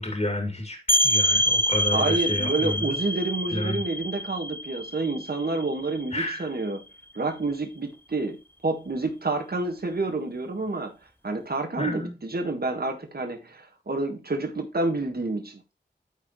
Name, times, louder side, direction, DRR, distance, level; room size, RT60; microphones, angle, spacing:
voice 1, 0.0-3.0 3.5-3.8 6.1-6.5 11.8-12.1, left 1 dB, 40° left, 2.6 m, -30 dB
sound 1, 0.9-6.4, equal, 10° left, 0.7 m, -26 dB
voice 2, 1.9-6.8 7.1-10.9 11.2-15.6, right 2 dB, 60° right, 1.7 m, -29 dB
13.0 x 4.7 x 3.1 m
wide cardioid pair, 50°, 18 cm